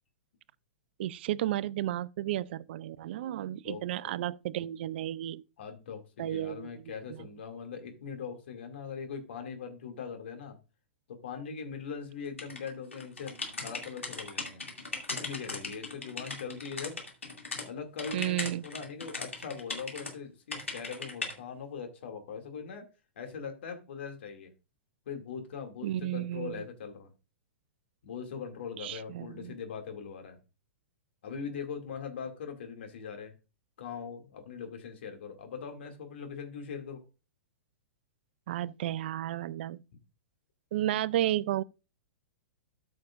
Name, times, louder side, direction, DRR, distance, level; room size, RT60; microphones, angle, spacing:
voice 1, 1.0-5.4 6.2-6.7 18.1-18.7 25.8-26.6 28.8-29.5 38.5-39.8 40.7-41.6, right 13 dB, 55° right, 0.4 m, -32 dB
voice 2, 3.6-4.3 5.6-10.6 11.1-14.6 15.1-17.0 17.6-22.9 23.2-24.5 25.1-27.1 28.0-30.4 31.2-33.3 33.8-37.0, left 6 dB, 65° left, 2.3 m, -41 dB
sound 1, 12.4-17.7 18.0-20.1 20.5-21.3, left 3 dB, 90° left, 2.4 m, -38 dB
13.5 x 6.4 x 2.5 m
hypercardioid pair, 110°, 7 cm